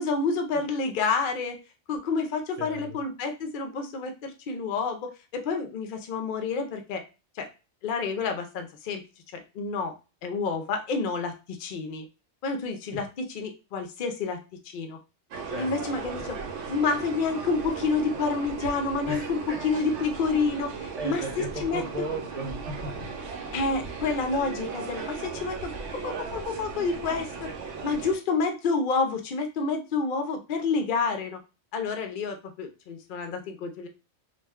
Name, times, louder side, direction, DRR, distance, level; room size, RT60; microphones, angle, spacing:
voice 1, 0.0-1.6 1.9-7.0 7.3-7.5 7.8-9.0 9.3-9.9 10.2-12.1 12.4-14.4 14.6-15.0 15.6-16.4 16.7-21.8 23.5-27.5 27.8-31.4 31.7-33.9, left 4 dB, 60° left, 5 dB, 0.5 m, -29 dB
voice 2, 2.6-3.0 12.9-13.0 15.5-15.8 19.1-19.6 20.9-23.1, right 2 dB, 40° right, -1 dB, 0.7 m, -36 dB
sound 1, 15.3-28.2, right 5 dB, 75° right, 0.9 m, -37 dB
2.4 x 2.1 x 3.4 m, 0.31 s
omnidirectional pair, 1.2 m